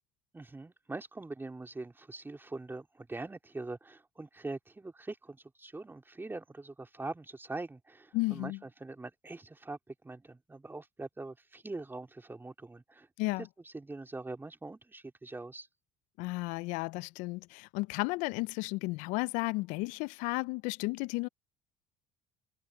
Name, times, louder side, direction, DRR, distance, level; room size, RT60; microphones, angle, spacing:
voice 1, 0.3-15.7, right 2 dB, 15° right, 3.7 m, -43 dB
voice 2, 8.1-8.6 13.2-13.5 16.2-21.3, left 23 dB, 75° left, 0.5 m, -33 dB
supercardioid pair, 75°, 13 cm